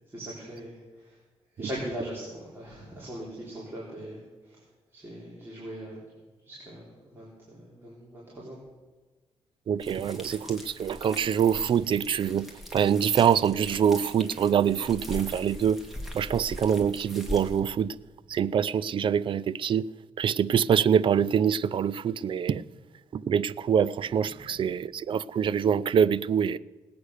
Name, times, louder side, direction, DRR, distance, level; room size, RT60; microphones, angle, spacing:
voice 1, 0.1-1.2 1.6-4.2 4.5-4.6 4.9-6.0 6.4-8.6, right 1 dB, 20° right, 3.8 m, -40 dB
voice 2, 9.7-15.8 16.1-17.9 18.3-19.9 20.2-22.6 23.1-26.6, right 8 dB, 55° right, 0.5 m, -25 dB
sound 1, 9.8-17.6, left 1 dB, ahead, 2.5 m, -41 dB
19.0 x 8.7 x 6.6 m
cardioid pair, 125°, 11 cm